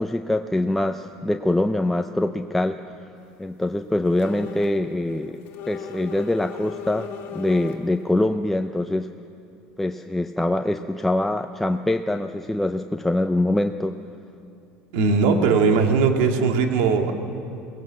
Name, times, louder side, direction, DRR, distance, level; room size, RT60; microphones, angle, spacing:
voice 1, 0.0-2.8 3.4-9.1 9.8-14.0, left 1 dB, 5° left, 6 dB, 0.5 m, -24 dB
sound 1, 4.0-4.8 5.1-8.0, left 9 dB, 60° left, 2.2 m, -37 dB
voice 2, 14.9-17.1, right 5 dB, 80° right, 4 dB, 2.1 m, -19 dB
21.5 x 18.0 x 7.5 m, 2.6 s
cardioid pair, 140°, 5 cm